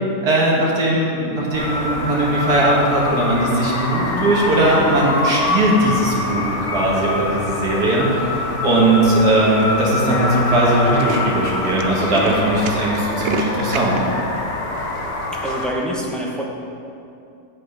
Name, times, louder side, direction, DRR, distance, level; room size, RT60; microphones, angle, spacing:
voice 1, 0.2-8.3 8.6-14.0, right 1 dB, 85° right, -5 dB, 2.0 m, -19 dB
sound 1, 1.5-15.7, left 2 dB, 50° left, 1.3 m, -25 dB
Tools, 7.9-8.3 9.0-9.1 9.3-9.4 9.6-9.8 10.1-10.2 10.5-14.0, right 5 dB, 65° right, 0.6 m, -29 dB
voice 2, 15.4-16.4, equal, ahead, -3 dB, 0.7 m, -25 dB
7.8 x 6.4 x 5.3 m, 2.6 s
omnidirectional pair, 1.6 m